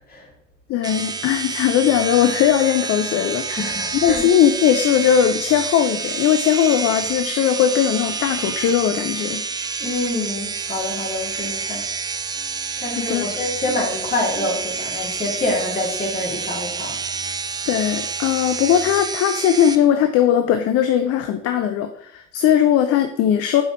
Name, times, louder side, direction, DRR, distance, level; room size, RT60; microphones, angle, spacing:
voice 1, 0.7-9.4 12.9-13.2 17.7-23.6, left 9 dB, 40° left, 8 dB, 0.5 m, -19 dB
sound 1, 0.8-19.8, right 5 dB, 10° right, 0.3 m, -28 dB
voice 2, 3.5-4.2 9.8-11.9 12.8-17.0, left 2 dB, 25° left, -2 dB, 2.5 m, -26 dB
8.6 x 4.9 x 2.9 m, 0.74 s
figure-of-eight pair, 50°, 36 cm